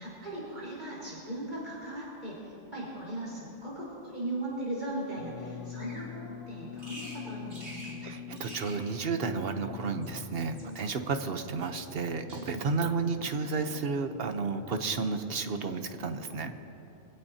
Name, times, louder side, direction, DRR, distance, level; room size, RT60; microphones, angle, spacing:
voice 1, 0.0-8.2 10.6-10.9 13.0-13.1, right 1 dB, 35° right, -6 dB, 4.6 m, -38 dB
sound 1, 5.2-16.1, left 10 dB, 55° left, 0.6 m, -46 dB
Bird vocalization bird call bird song, 5.8-6.1 6.8-7.2 7.5-8.0 8.3-8.8 9.8-10.8 11.6-12.0 12.3-12.8 13.3-13.6, equal, 75° right, 3.8 m, -48 dB
voice 2, 8.0-16.6, right 4 dB, 55° right, 7 dB, 1.0 m, -32 dB
24.0 x 16.0 x 2.8 m, 2.9 s
omnidirectional pair, 1.3 m